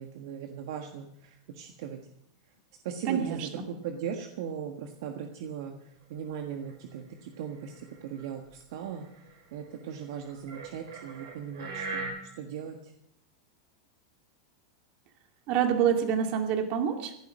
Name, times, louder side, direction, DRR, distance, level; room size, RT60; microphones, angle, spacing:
voice 1, 0.0-2.0 2.8-9.1 9.5-12.9, right 8 dB, 65° right, 5 dB, 1.5 m, -39 dB
voice 2, 3.1-3.6 15.5-17.2, right 8 dB, 50° right, 5 dB, 2.5 m, -27 dB
sound 1, 6.1-6.2 6.7-6.8 7.6-8.5 9.1-9.4 10.2-12.1, right 4 dB, 85° right, 5.1 m, -39 dB
15.5 x 11.5 x 6.3 m, 0.78 s
supercardioid pair, 125°, 2 cm